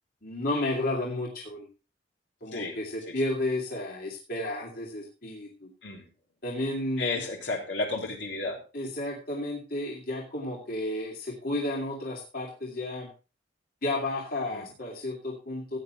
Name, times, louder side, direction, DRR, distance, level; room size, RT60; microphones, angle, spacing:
voice 1, 0.2-1.7 2.4-5.7 6.4-7.3 8.7-13.1 13.8-15.8, left 1 dB, 50° left, -2 dB, 2.5 m, -32 dB
voice 2, 7.0-8.6 14.5-14.6, left 3 dB, 70° left, 1 dB, 3.3 m, -32 dB
15.5 x 9.4 x 3.2 m, 0.31 s
head